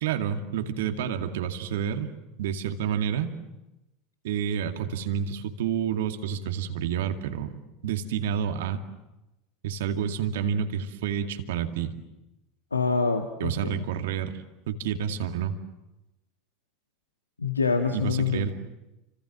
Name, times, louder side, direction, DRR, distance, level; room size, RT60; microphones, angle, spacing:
voice 1, 0.0-3.3 4.2-8.8 9.6-11.9 13.4-14.4 14.7-15.6 17.9-18.5, right 8 dB, 65° right, 6 dB, 2.3 m, -29 dB
voice 2, 12.7-13.8 17.4-18.5, left 4 dB, 85° left, 6 dB, 1.6 m, -26 dB
29.5 x 26.0 x 7.6 m, 0.96 s
figure-of-eight pair, 75°, 0 cm